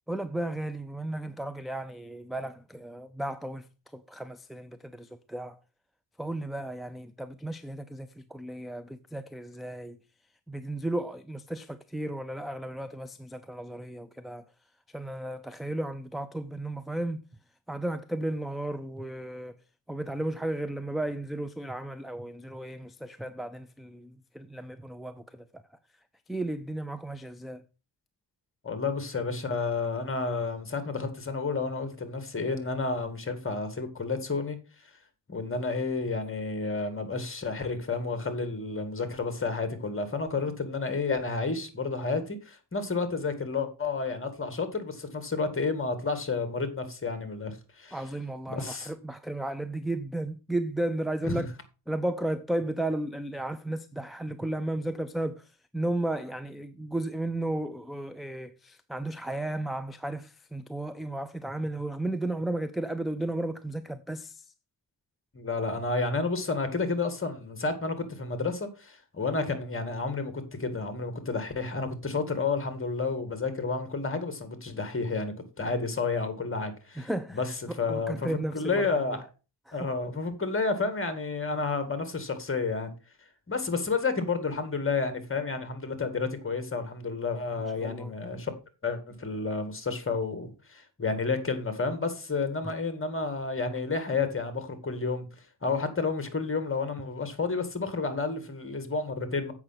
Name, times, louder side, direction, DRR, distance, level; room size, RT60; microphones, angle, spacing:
voice 1, 0.1-3.7 3.9-5.6 6.2-10.0 10.5-14.4 14.9-17.2 17.7-19.6 19.9-25.4 26.3-27.6 47.9-51.5 51.9-64.4 77.0-77.4 77.7-79.2 79.7-79.9 87.8-88.1 92.6-92.7, right 1 dB, ahead, 0.5 m, -34 dB
voice 2, 28.6-34.6 35.3-48.0 48.5-48.9 51.2-51.5 65.3-70.3 70.6-77.5 77.8-79.3 79.7-82.9 83.5-88.5 88.8-95.2 95.6-99.5, left 4 dB, 30° left, 2.1 m, -31 dB
8.0 x 5.9 x 5.8 m
cardioid pair, 95°, 43 cm